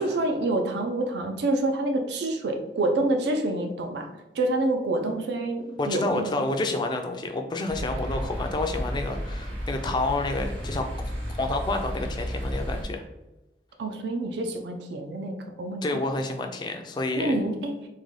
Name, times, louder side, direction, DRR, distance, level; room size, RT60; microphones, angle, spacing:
voice 1, 0.0-4.1 4.3-6.3 13.8-15.8 17.2-17.7, right 2 dB, 70° right, 4 dB, 0.4 m, -27 dB
voice 2, 5.8-10.9 11.4-13.0 15.8-17.4, left 2 dB, 25° left, 4 dB, 0.3 m, -29 dB
sound 1, 7.7-12.8, equal, 90° right, 1.1 m, -32 dB
3.7 x 2.2 x 3.2 m, 0.98 s
head